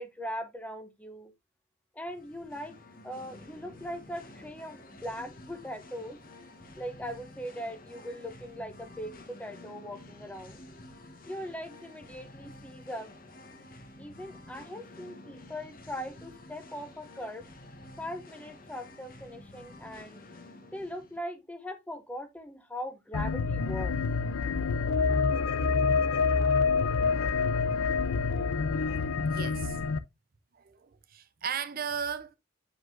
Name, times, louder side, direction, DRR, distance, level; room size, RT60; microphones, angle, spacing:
voice 1, 0.0-1.3 1.9-2.8 3.0-6.2 6.8-10.6 11.3-13.1 14.0-17.5 18.0-20.2 20.7-23.9, equal, 5° left, 0.6 m, -40 dB
Singing, 2.0-21.2, left 2 dB, 45° left, 1.0 m, -50 dB
sound 1, 23.1-30.0, left 4 dB, 80° left, 0.5 m, -27 dB
voice 2, 29.3-29.8 30.5-32.4, right 7 dB, 45° right, 0.6 m, -36 dB
7.9 x 5.1 x 2.5 m
head